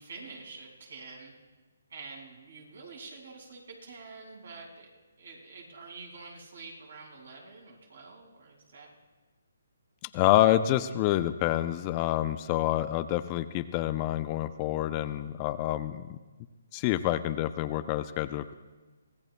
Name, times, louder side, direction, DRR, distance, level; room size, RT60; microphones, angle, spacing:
voice 1, 0.0-1.3 1.9-4.9 5.2-8.9, right 4 dB, 65° right, 0 dB, 4.6 m, -47 dB
voice 2, 10.1-16.2 16.7-18.5, left 14 dB, 25° left, 12 dB, 0.5 m, -27 dB
24.5 x 17.0 x 2.2 m, 1.3 s
hypercardioid pair, 150°, 0 cm